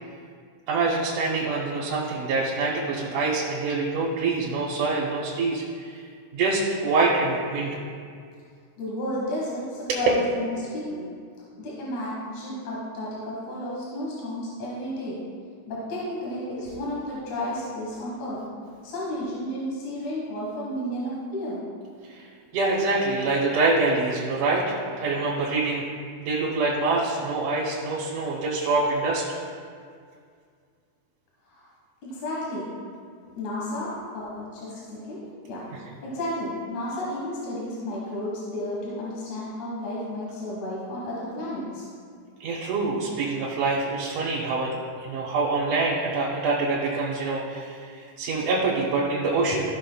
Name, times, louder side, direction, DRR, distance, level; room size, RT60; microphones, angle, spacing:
voice 1, 0.7-6.0 6.3-7.7 9.9-10.0 16.6-16.8 22.1-22.3 22.5-25.8 26.2-29.4 35.7-35.8 42.4-49.7, right 3 dB, 70° right, -6 dB, 2.3 m, -25 dB
voice 2, 8.8-11.0 11.6-15.2 15.7-18.4 18.8-21.6 31.5-31.6 32.0-32.6 33.4-35.2 35.4-35.6 36.0-41.8 49.5-49.6, left 1 dB, 65° left, -6 dB, 2.6 m, -32 dB
15.0 x 6.0 x 2.2 m, 2.1 s
omnidirectional pair, 3.9 m